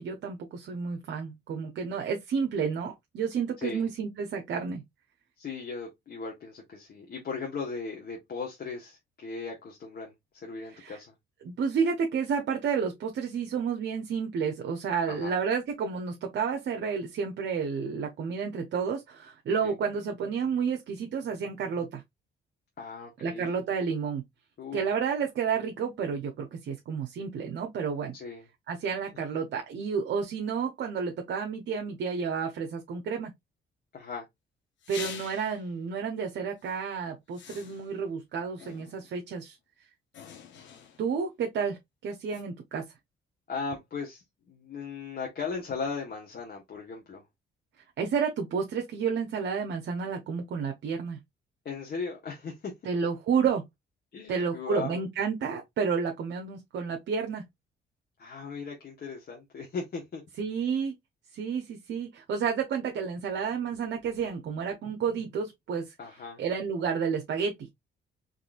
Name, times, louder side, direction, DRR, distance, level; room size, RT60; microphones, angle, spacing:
voice 1, 0.0-4.8 10.7-11.0 11.4-22.0 23.2-24.2 24.7-28.1 28.7-33.3 34.9-39.6 41.0-41.8 42.0-42.9 48.0-51.2 52.9-53.6 54.3-57.4 60.4-60.9 61.3-65.9 66.4-67.5, right 6 dB, 65° right, 0.9 m, -30 dB
voice 2, 3.6-3.9 5.4-10.1 10.4-11.1 15.1-15.4 19.6-19.7 22.8-23.6 24.6-24.9 28.1-28.5 33.9-34.2 43.5-47.2 51.6-52.7 54.1-55.0 58.2-60.2 66.0-66.4, left 5 dB, 50° left, 1.3 m, -37 dB
sound 1, 34.8-35.7 36.6-36.8 37.3-38.1 38.6-39.2 40.1-41.2 42.3-42.4, left 7 dB, 70° left, 1.0 m, -45 dB
4.0 x 3.0 x 2.5 m
cardioid pair, 90°, 20 cm